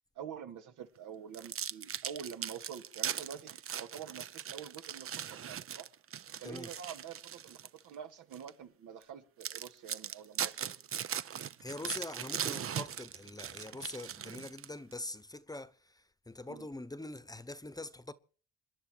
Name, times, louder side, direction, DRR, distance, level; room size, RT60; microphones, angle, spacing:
voice 1, 0.2-5.9 6.4-10.7 16.5-16.7, right 8 dB, 85° right, 2.2 m, -47 dB
sound 1, 1.3-7.8 8.3-8.5 9.0-9.1 9.4-14.9, right 9 dB, 45° right, 0.7 m, -39 dB
voice 2, 11.6-18.1, left 2 dB, 10° left, 1.0 m, -43 dB
26.5 x 11.0 x 4.6 m
cardioid pair, 90°, 30 cm